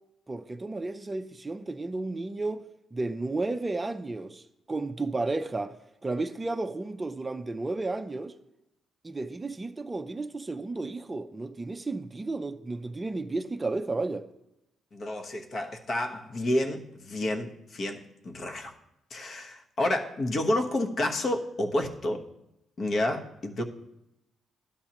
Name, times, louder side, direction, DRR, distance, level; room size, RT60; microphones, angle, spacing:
voice 1, 0.3-8.3 9.0-14.3, right 2 dB, 20° right, 0.5 m, -33 dB
voice 2, 14.9-18.8 19.1-22.2 22.8-23.6, left 1 dB, 50° left, 1.1 m, -30 dB
12.0 x 8.7 x 2.9 m
cardioid pair, 90°, 0 cm